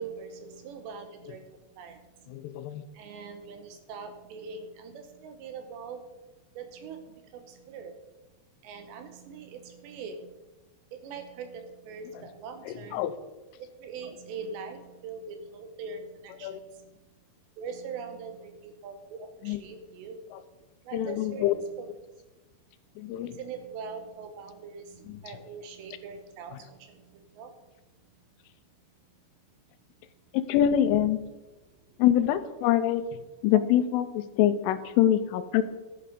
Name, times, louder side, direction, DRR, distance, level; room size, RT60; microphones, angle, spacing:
voice 1, 0.0-1.5 1.8-2.0 2.9-6.0 6.6-8.0 8.6-10.3 10.9-13.0 13.8-16.9 17.6-20.2 20.9-21.9 23.2-27.5 33.5-33.6, right 5 dB, 75° right, 7 dB, 2.8 m, -42 dB
voice 2, 2.3-2.8 12.7-13.1 16.4-16.6 19.4-19.6 20.3-20.4 20.9-21.5 23.0-23.4 25.1-25.2 30.3-31.2 32.0-33.0 33.4-35.6, left 11 dB, 90° left, 12 dB, 3.3 m, -25 dB
12.0 x 9.0 x 5.0 m, 1.1 s
omnidirectional pair, 5.6 m